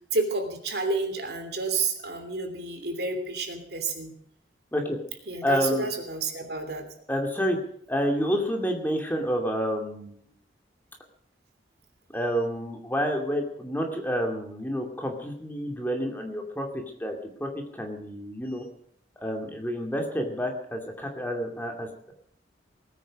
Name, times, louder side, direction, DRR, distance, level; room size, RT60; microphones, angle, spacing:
voice 1, 0.1-4.1 5.3-6.9, right 3 dB, 60° right, 6 dB, 2.9 m, -30 dB
voice 2, 5.4-5.9 7.1-7.6 7.9-10.2 12.1-18.7 19.2-22.1, equal, 10° left, 2 dB, 2.5 m, -29 dB
20.0 x 9.5 x 6.3 m, 0.65 s
head